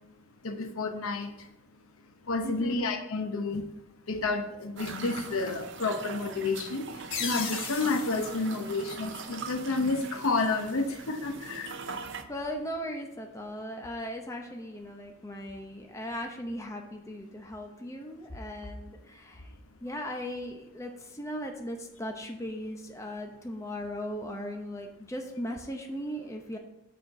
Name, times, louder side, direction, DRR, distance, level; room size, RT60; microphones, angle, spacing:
voice 1, 0.4-1.5 2.2-3.6 4.1-11.8, left 3 dB, 85° left, 6 dB, 0.8 m, -30 dB
voice 2, 2.4-2.8 11.9-19.5 19.8-26.6, equal, 15° left, 2 dB, 0.7 m, -38 dB
sound 1, 4.8-12.2, right 5 dB, 60° right, 0.6 m, -42 dB
sound 2, 7.1-9.7, left 5 dB, 65° left, 1.2 m, -38 dB
6.7 x 4.4 x 6.3 m, 0.88 s
head